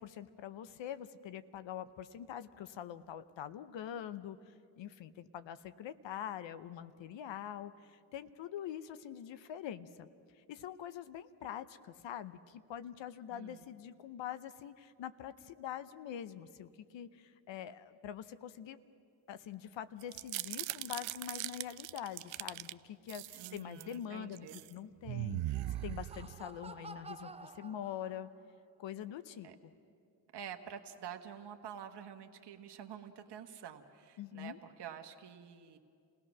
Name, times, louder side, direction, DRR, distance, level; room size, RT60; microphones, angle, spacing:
voice 1, 0.0-10.1 10.4-18.8 19.3-28.3 28.8-29.7 34.2-34.6, left 10 dB, 70° left, 13 dB, 0.8 m, -44 dB
voice 2, 13.3-13.7 23.3-24.6 29.4-29.6 30.3-35.8, right 8 dB, 60° right, 5 dB, 1.3 m, -48 dB
sound 1, 20.0-22.7 23.1-23.9 24.4-24.7 25.0-26.7, right 16 dB, 80° right, 0.6 m, -40 dB
Laughter, 25.4-28.6, right 3 dB, 15° right, 0.7 m, -51 dB
29.0 x 16.5 x 6.1 m, 2.4 s
supercardioid pair, 60°, 46 cm